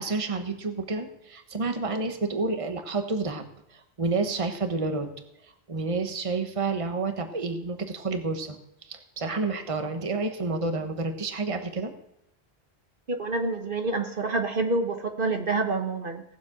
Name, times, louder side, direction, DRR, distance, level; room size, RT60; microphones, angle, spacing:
voice 1, 0.0-3.4 3.7-5.1 5.7-8.6 8.8-11.9, right 3 dB, 30° right, 6 dB, 1.2 m, -29 dB
voice 2, 13.2-16.2, right 3 dB, 55° right, 5 dB, 1.3 m, -27 dB
18.0 x 7.4 x 6.0 m, 0.78 s
omnidirectional pair, 1.1 m